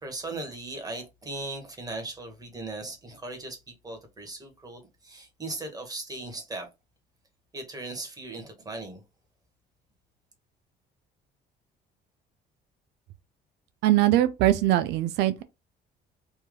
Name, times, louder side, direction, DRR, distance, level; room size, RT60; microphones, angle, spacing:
voice 1, 0.0-6.7 7.5-9.0, right 2 dB, 20° right, 1.8 m, -38 dB
voice 2, 13.8-15.4, right 14 dB, 85° right, 0.5 m, -22 dB
4.5 x 2.9 x 3.7 m
cardioid pair, 110°, 17 cm